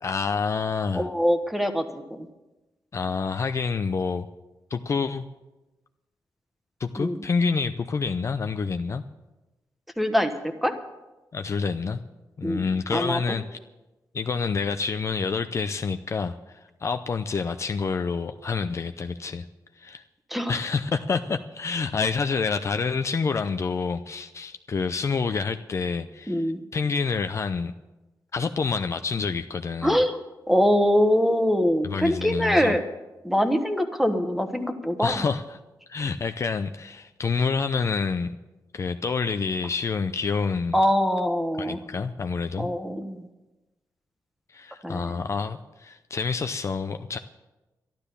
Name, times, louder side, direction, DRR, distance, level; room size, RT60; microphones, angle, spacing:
voice 1, 0.0-1.1 2.9-4.3 4.7-5.2 6.8-9.0 11.3-12.0 12.4-13.6 14.1-19.4 19.8-20.0 20.5-26.4 26.7-27.7 28.3-30.0 31.8-32.8 35.0-35.6 35.9-38.3 38.7-40.8 41.6-42.7 44.5-47.2, left 5 dB, 40° left, 8 dB, 0.5 m, -28 dB
voice 2, 0.9-2.3 7.0-7.2 10.0-10.3 10.6-10.7 12.4-12.6 12.9-13.2 20.3-20.5 26.3-26.6 29.8-30.2 30.5-32.8 33.2-35.3 40.7-41.8 42.6-43.2 44.8-45.2, equal, ahead, 7 dB, 1.2 m, -23 dB
12.0 x 12.0 x 6.8 m, 1.1 s
wide cardioid pair, 115°, 7 cm